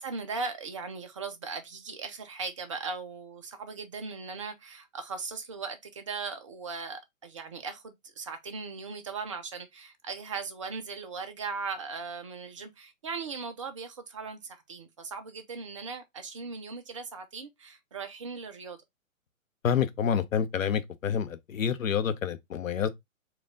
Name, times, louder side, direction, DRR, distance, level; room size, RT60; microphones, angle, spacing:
voice 1, 0.0-18.8, right 4 dB, 25° right, 0.4 m, -38 dB
voice 2, 19.6-22.9, left 7 dB, 70° left, 0.8 m, -28 dB
4.4 x 2.3 x 3.7 m
figure-of-eight pair, 130°, 41 cm